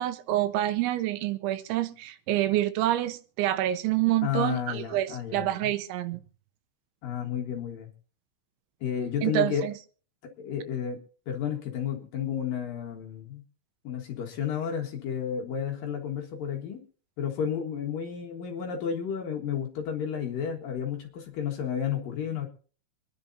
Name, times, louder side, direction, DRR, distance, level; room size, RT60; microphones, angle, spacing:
voice 1, 0.0-6.2 9.2-9.7, right 14 dB, 80° right, 11 dB, 3.2 m, -27 dB
voice 2, 4.2-5.7 7.0-7.9 8.8-9.6 10.2-11.0 11.3-13.4 13.8-16.8 17.2-22.5, left 8 dB, 60° left, 2 dB, 2.8 m, -32 dB
25.5 x 10.5 x 2.8 m, 0.40 s
omnidirectional pair, 5.4 m